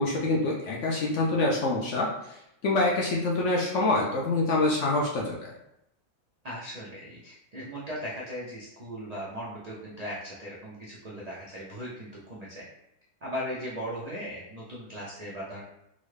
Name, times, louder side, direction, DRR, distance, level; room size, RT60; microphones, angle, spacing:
voice 1, 0.0-5.5, left 2 dB, 65° left, -2 dB, 0.8 m, -26 dB
voice 2, 6.4-12.7 13.2-15.6, equal, 55° right, -7 dB, 0.4 m, -38 dB
3.8 x 2.1 x 3.2 m, 0.82 s
omnidirectional pair, 1.6 m